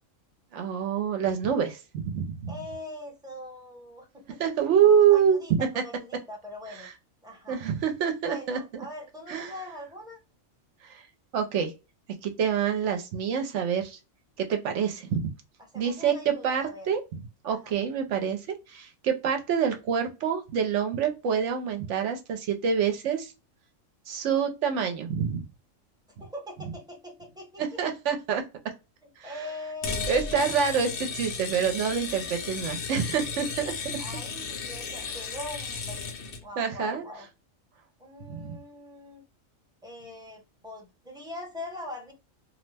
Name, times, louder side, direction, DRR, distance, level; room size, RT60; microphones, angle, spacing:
voice 1, 0.5-2.5 4.4-5.7 6.7-6.9 7.5-8.8 9.3-9.5 10.8-11.1 11.3-11.7 12.2-14.0 14.4-15.2 15.7-23.3 24.1-25.5 27.6-28.4 29.2-29.4 30.1-34.0 35.0-35.1 36.6-37.0 38.3-38.6, right 7 dB, 70° right, 0.9 m, -26 dB
voice 2, 2.5-4.5 5.1-6.9 7.2-7.6 8.3-10.2 15.7-16.9 17.5-17.7 26.2-27.6 29.2-30.4 34.0-37.3 38.0-39.2 39.8-42.1, left 1 dB, 5° right, 0.7 m, -42 dB
sound 1, 29.8-36.4, left 5 dB, 85° left, 1.2 m, -35 dB
2.7 x 2.0 x 3.2 m
omnidirectional pair, 1.4 m